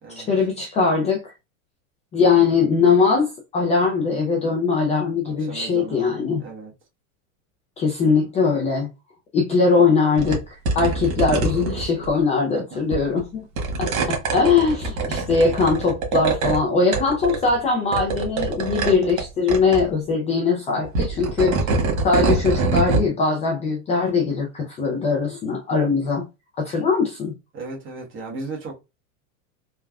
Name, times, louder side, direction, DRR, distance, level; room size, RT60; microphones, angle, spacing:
voice 1, 0.2-1.3 2.1-6.4 7.8-8.9 9.3-13.4 13.8-21.6 22.0-26.2 26.6-27.3, left 4 dB, 20° left, 0.3 m, -21 dB
voice 2, 5.2-6.1 6.4-6.7 12.5-13.0 13.7-13.8 27.5-28.7, right 3 dB, 30° right, 1.1 m, -36 dB
sound 1, 10.2-10.4 10.6-12.1 12.9-13.2 13.6-16.6 16.9-17.6 17.9-19.2 19.5-19.8 20.8-23.1, right 3 dB, 85° right, 1.3 m, -24 dB
3.3 x 2.2 x 2.3 m
supercardioid pair, 125°, 40 cm